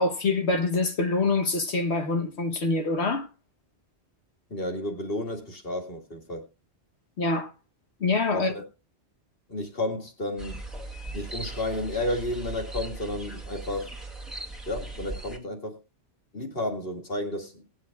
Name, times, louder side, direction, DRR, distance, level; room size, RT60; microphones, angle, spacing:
voice 1, 0.0-3.3 7.2-7.5 8.0-8.5, left 3 dB, 75° left, 1.6 m, -25 dB
voice 2, 4.5-6.5 8.3-8.7 9.5-10.6 11.1-13.9 14.7-15.8 16.3-17.6, left 1 dB, 55° left, 2.4 m, -32 dB
sound 1, 10.4-15.4, right 2 dB, ahead, 2.1 m, -38 dB
20.0 x 8.3 x 2.3 m
omnidirectional pair, 1.1 m